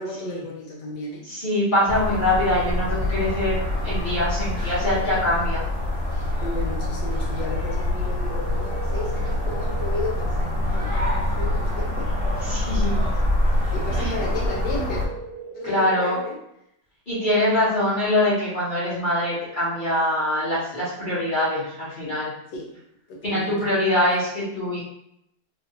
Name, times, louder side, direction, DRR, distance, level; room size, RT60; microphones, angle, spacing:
voice 1, 0.0-1.3 6.4-12.1 13.7-15.0 15.5-16.4 22.5-22.7 23.1-23.8, left 2 dB, 75° left, 0 dB, 1.3 m, -34 dB
voice 2, 1.3-3.6 3.8-5.6 12.4-13.1 14.0-14.1 15.6-16.2 17.1-22.3 23.2-24.8, left 1 dB, 35° left, -9 dB, 0.9 m, -23 dB
sound 1, 1.9-15.1, left 1 dB, 30° right, 1.1 m, -25 dB
sound 2, 8.3-10.3 14.3-16.3, right 5 dB, 85° right, 1.3 m, -38 dB
3.3 x 2.4 x 2.7 m, 0.78 s
omnidirectional pair, 2.0 m